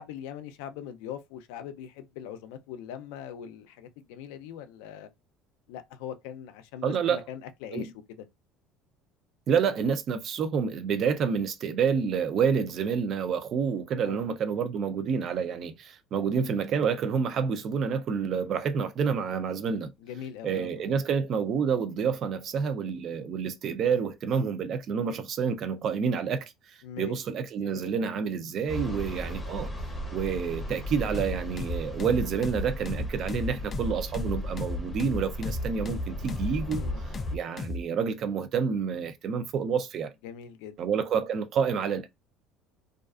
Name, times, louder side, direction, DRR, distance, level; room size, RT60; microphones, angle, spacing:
voice 1, 0.0-5.1 5.7-7.9 14.0-14.2 20.0-20.7 26.8-27.1 27.6-28.1 28.8-29.0 36.8-37.0 40.2-40.8, left 9 dB, 90° left, 0.4 m, -41 dB
voice 2, 6.8-7.2 7.7-7.9 9.5-19.9 20.4-29.7 30.1-40.1 40.8-42.1, right 6 dB, 40° right, 0.5 m, -28 dB
sound 1, 28.7-37.4, equal, 5° left, 0.7 m, -36 dB
sound 2, 31.1-37.9, left 2 dB, 25° left, 0.3 m, -35 dB
2.4 x 2.4 x 2.4 m
cardioid pair, 145°, 0 cm